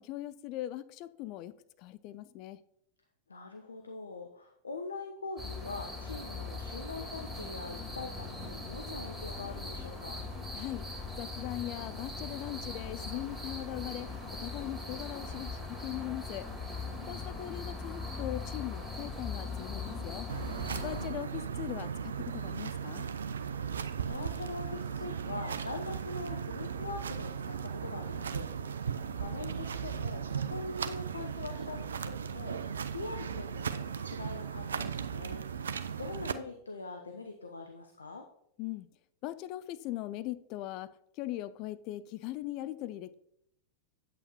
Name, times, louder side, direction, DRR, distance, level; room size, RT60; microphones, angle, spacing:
voice 1, 0.0-2.6 10.5-10.8 11.2-16.5 17.1-20.3 20.8-23.1 38.6-38.9 39.2-43.1, left 15 dB, 40° left, 14 dB, 0.4 m, -40 dB
voice 2, 3.3-10.2 16.9-17.4 20.9-21.5 23.6-28.5 28.8-38.3, left 3 dB, 75° left, 5 dB, 0.7 m, -43 dB
sound 1, 5.4-21.1, left 3 dB, 5° right, 2.7 m, -40 dB
sound 2, 20.3-36.3, right 7 dB, 70° right, 0.4 m, -37 dB
8.6 x 8.5 x 2.9 m, 0.74 s
figure-of-eight pair, 90°, 0 cm